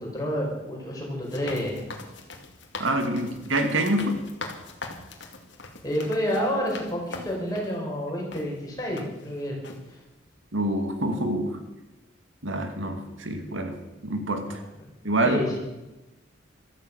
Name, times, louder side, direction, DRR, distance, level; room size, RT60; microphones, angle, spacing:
voice 1, 0.0-1.8 2.9-3.4 5.8-9.6 9.9-10.0 14.5-14.6 15.2-15.5, equal, 20° left, -3 dB, 5.4 m, -29 dB
sound 1, 1.2-7.8 8.3-8.5 9.0-9.3 9.6-9.8, left 3 dB, 65° left, 2.4 m, -41 dB
voice 2, 2.8-4.2 10.5-11.5 12.4-13.7 14.0-14.6 15.0-15.6, right 1 dB, 80° right, 5 dB, 2.3 m, -26 dB
15.0 x 13.5 x 6.4 m, 1.0 s
head